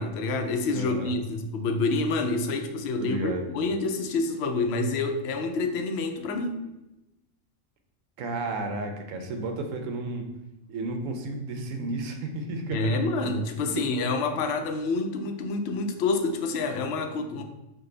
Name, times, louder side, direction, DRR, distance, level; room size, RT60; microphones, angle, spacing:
voice 1, 0.0-6.6 12.7-17.4, left 3 dB, 65° left, 6 dB, 0.7 m, -28 dB
voice 2, 0.7-1.1 3.0-3.4 8.2-10.2 10.7-13.0 13.7-13.8, right 2 dB, 80° right, 5 dB, 1.0 m, -32 dB
5.0 x 2.3 x 3.8 m, 0.96 s
omnidirectional pair, 1.3 m